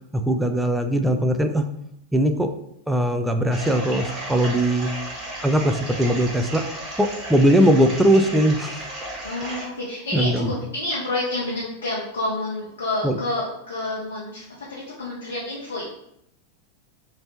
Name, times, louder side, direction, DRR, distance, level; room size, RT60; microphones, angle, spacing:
voice 1, 0.1-1.7 2.1-2.5 2.9-4.9 5.4-6.6 7.0-8.9 10.1-10.5 13.0-13.2, right 1 dB, 5° right, 6 dB, 0.3 m, -20 dB
sound 1, 3.5-9.6, right 1 dB, 25° right, 1.4 m, -34 dB
voice 2, 9.2-15.8, left 2 dB, 70° left, -4 dB, 0.7 m, -29 dB
3.0 x 2.9 x 2.9 m, 0.77 s
figure-of-eight pair, 90°, 0 cm